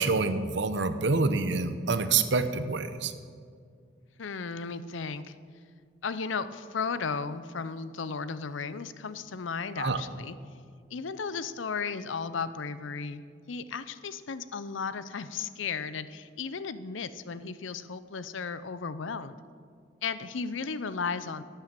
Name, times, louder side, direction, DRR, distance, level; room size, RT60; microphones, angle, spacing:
voice 1, 0.0-3.1 9.8-10.0, right 4 dB, 65° right, 10 dB, 0.8 m, -27 dB
voice 2, 4.2-5.4 6.0-10.4 10.9-19.4 20.0-21.4, left 5 dB, 75° left, 14 dB, 0.6 m, -35 dB
11.5 x 9.0 x 7.5 m, 2.1 s
head